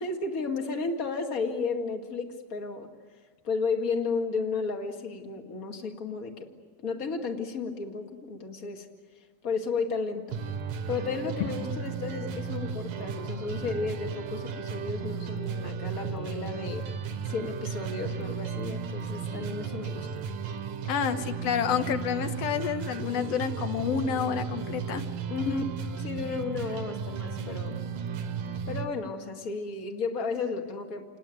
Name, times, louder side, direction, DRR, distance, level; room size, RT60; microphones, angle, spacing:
voice 1, 0.0-2.9 3.4-6.5 6.8-8.9 9.4-10.4 10.9-16.9 17.3-20.1 25.3-25.7 26.0-27.7 28.7-31.0, left 4 dB, 30° left, 4 dB, 1.7 m, -33 dB
sound 1, 10.3-28.9, right 6 dB, 60° right, 2.2 m, -35 dB
voice 2, 20.9-25.0 25.5-25.6, left 7 dB, 65° left, 9 dB, 1.6 m, -29 dB
29.5 x 19.5 x 9.4 m, 1.5 s
omnidirectional pair, 4.4 m